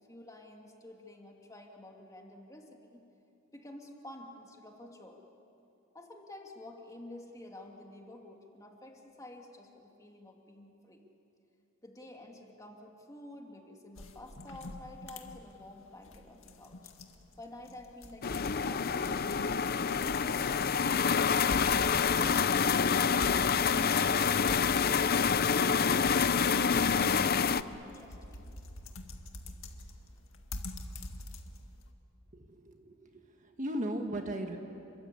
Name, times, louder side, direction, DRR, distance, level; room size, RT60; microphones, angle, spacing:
voice 1, 0.0-3.0 3.5-5.2 5.9-11.0 11.8-16.9 17.4-21.4 26.2-28.6, left 1 dB, 15° left, 1 dB, 2.4 m, -50 dB
sound 1, 14.0-31.9, left 2 dB, 70° left, 2.0 m, -46 dB
sound 2, 18.2-27.6, left 6 dB, 45° left, 0.6 m, -27 dB
voice 2, 32.3-34.6, right 1 dB, 35° right, 4 dB, 1.7 m, -37 dB
30.0 x 22.5 x 8.6 m, 2.8 s
head